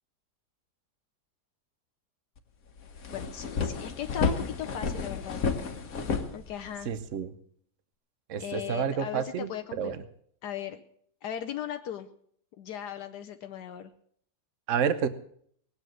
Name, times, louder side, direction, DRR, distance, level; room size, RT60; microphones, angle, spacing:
sound 1, 2.4-2.5 2.8-7.0, left 5 dB, 60° left, 1.7 m, -31 dB
voice 1, 3.1-5.4 6.3-6.9 8.4-10.0 10.4-10.8 11.2-12.1 12.6-13.9, left 10 dB, 80° left, 8 dB, 1.4 m, -37 dB
voice 2, 6.8-7.3 8.3-9.5 9.8-10.0 14.7-15.1, right 7 dB, 55° right, 11 dB, 1.2 m, -29 dB
19.0 x 8.2 x 7.7 m, 0.62 s
omnidirectional pair, 1.7 m